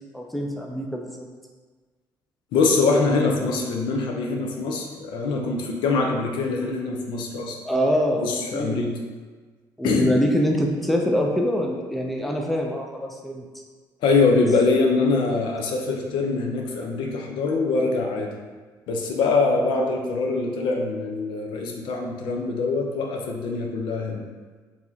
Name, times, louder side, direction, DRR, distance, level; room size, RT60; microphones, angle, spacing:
voice 1, 0.1-1.3 7.6-8.9 9.8-13.4, equal, ahead, 0 dB, 0.4 m, -24 dB
voice 2, 2.5-7.6 8.2-8.9 9.8-10.2 14.0-18.3 18.9-24.2, left 3 dB, 75° left, 1 dB, 0.6 m, -23 dB
4.7 x 2.8 x 2.7 m, 1.4 s
cardioid pair, 115°, 8 cm